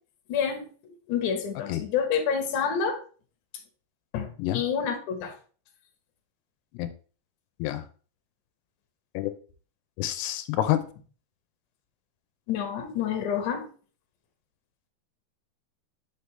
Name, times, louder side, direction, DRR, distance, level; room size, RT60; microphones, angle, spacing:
voice 1, 0.3-0.7 1.1-3.0 4.1-5.3 12.5-13.7, left 7 dB, 65° left, 4 dB, 2.2 m, -28 dB
voice 2, 10.0-10.8, left 13 dB, 85° left, 11 dB, 2.6 m, -27 dB
6.6 x 5.6 x 3.2 m, 0.40 s
omnidirectional pair, 4.6 m